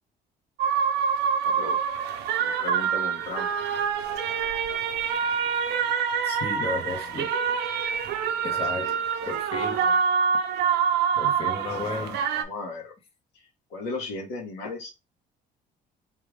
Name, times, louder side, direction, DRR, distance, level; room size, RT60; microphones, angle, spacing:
sound 1, 0.6-12.4, right 7 dB, 80° right, 0.6 m, -26 dB
voice 1, 1.4-1.8 2.4-3.5 7.0-7.3 8.3-9.4 9.7-10.0 11.7-12.1 12.4-12.9 13.3-14.9, left 3 dB, 90° left, 1.4 m, -37 dB
voice 2, 6.2-7.3 8.4-8.9 9.3-9.8 11.2-12.2, left 4 dB, 35° left, 0.9 m, -33 dB
3.5 x 2.5 x 3.3 m
cardioid pair, 110°, 17 cm